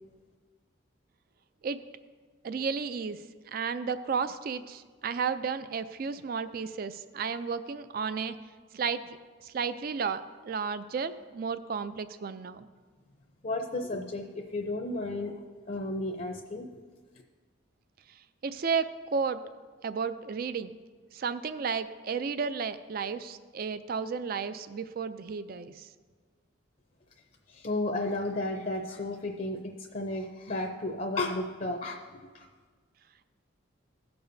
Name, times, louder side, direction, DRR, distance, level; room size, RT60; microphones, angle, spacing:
voice 1, 2.4-8.4 8.7-9.2 9.4-12.7 18.4-19.4 19.8-20.8 21.1-25.9, right 5 dB, 45° right, 13 dB, 0.3 m, -33 dB
voice 2, 13.4-15.3 15.7-16.7 27.5-32.5, left 2 dB, 40° left, 3 dB, 0.6 m, -33 dB
17.0 x 6.8 x 2.7 m, 1.5 s
head